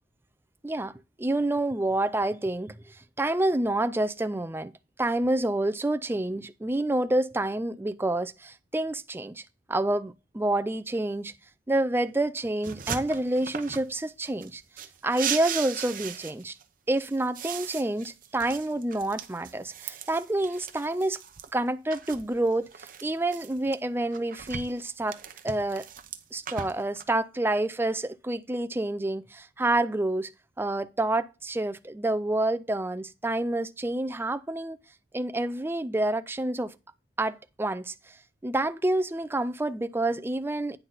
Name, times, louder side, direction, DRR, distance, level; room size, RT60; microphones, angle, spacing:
voice 1, 1.2-4.7 5.0-9.4 9.7-11.3 11.7-14.6 15.0-16.6 16.9-21.2 21.5-25.8 26.3-30.3 30.6-34.8 35.1-36.8 37.2-38.1 38.4-40.8, right 1 dB, 10° right, 0.4 m, -28 dB
sound 1, 12.6-13.9 14.2-16.6 17.0-21.5 21.9-23.7 24.1-27.0, right 8 dB, 45° right, 0.8 m, -38 dB
9.2 x 5.8 x 4.0 m
head